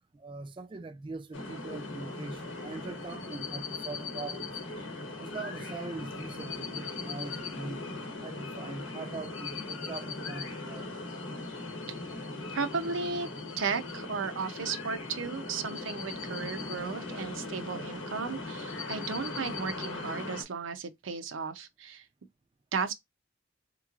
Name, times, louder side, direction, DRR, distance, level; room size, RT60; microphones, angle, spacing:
voice 1, 0.1-4.6 5.2-10.9, right 3 dB, 25° right, 0.3 m, -42 dB
sound 1, 1.3-20.4, left 3 dB, 90° left, 1.0 m, -39 dB
voice 2, 12.5-13.3 13.6-22.1 22.7-22.9, right 5 dB, 85° right, 0.6 m, -35 dB
3.6 x 3.0 x 2.4 m
head